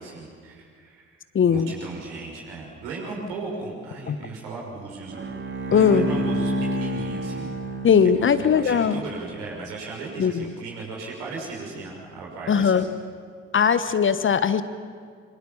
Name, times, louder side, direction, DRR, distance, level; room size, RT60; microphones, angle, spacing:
voice 1, 0.0-5.2 5.7-7.6 8.2-12.8, right 3 dB, 70° right, -2 dB, 6.4 m, -36 dB
voice 2, 1.3-1.7 4.1-4.2 5.7-6.1 7.8-9.0 10.2-10.4 12.5-12.9 13.5-14.6, left 7 dB, 35° left, 13 dB, 1.2 m, -19 dB
Bowed string instrument, 5.1-8.6, right 1 dB, 30° right, 2.9 m, -29 dB
26.5 x 25.0 x 7.3 m, 2.1 s
figure-of-eight pair, 50°, 36 cm